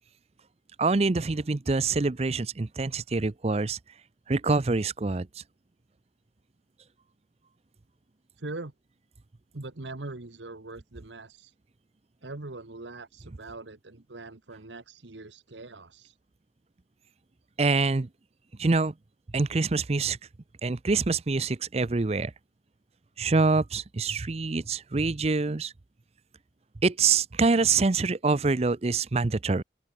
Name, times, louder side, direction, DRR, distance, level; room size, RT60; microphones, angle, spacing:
voice 1, 0.8-3.8 4.3-5.3 17.6-18.1 18.6-18.9 19.3-20.2 20.6-22.3 23.2-25.7 26.8-29.6, right 4 dB, 35° right, 0.6 m, -25 dB
voice 2, 8.4-8.7 9.5-11.5 12.2-16.2, right 2 dB, 80° right, 1.4 m, -41 dB
open air
head